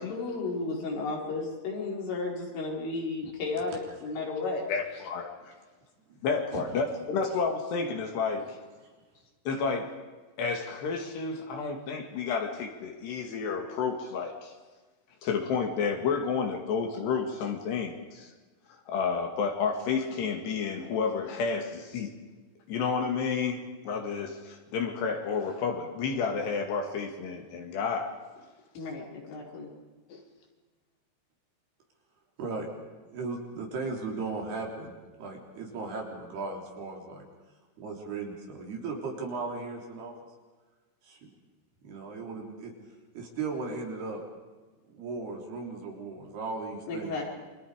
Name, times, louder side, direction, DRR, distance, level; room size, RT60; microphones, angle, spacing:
voice 1, 0.0-4.6 28.8-29.7 46.9-47.2, left 3 dB, 80° left, -2 dB, 7.6 m, -33 dB
voice 2, 4.7-5.5 6.2-8.6 9.5-9.9 10.4-14.5 15.2-18.3 18.9-22.1 22.7-28.1 30.1-30.2, left 5 dB, 65° left, 4 dB, 3.9 m, -31 dB
voice 3, 33.1-34.9 35.2-37.3 37.8-40.1 41.0-41.3 41.8-42.7 43.2-44.2 44.9-47.2, right 4 dB, 55° right, 0 dB, 5.5 m, -36 dB
29.0 x 25.0 x 5.1 m, 1.3 s
omnidirectional pair, 5.6 m